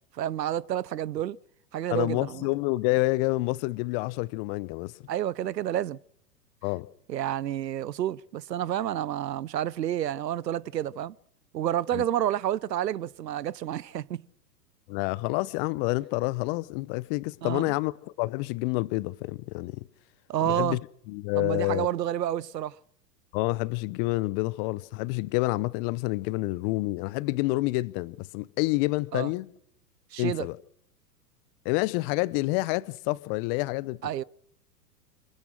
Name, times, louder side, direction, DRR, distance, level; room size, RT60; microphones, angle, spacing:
voice 1, 0.2-1.4 1.7-2.5 5.1-6.0 7.1-11.2 11.5-14.2 17.4-17.7 20.3-20.8 21.4-22.8 29.1-29.3 30.1-30.5 34.0-34.2, right 11 dB, 85° right, 0.7 m, -29 dB
voice 2, 1.9-4.9 6.6-6.9 11.9-12.0 14.9-19.8 20.4-20.8 21.1-21.9 23.3-29.5 30.2-30.6 31.6-34.2, left 22 dB, 35° left, 0.7 m, -28 dB
26.0 x 16.5 x 6.4 m
hypercardioid pair, 110°, 49 cm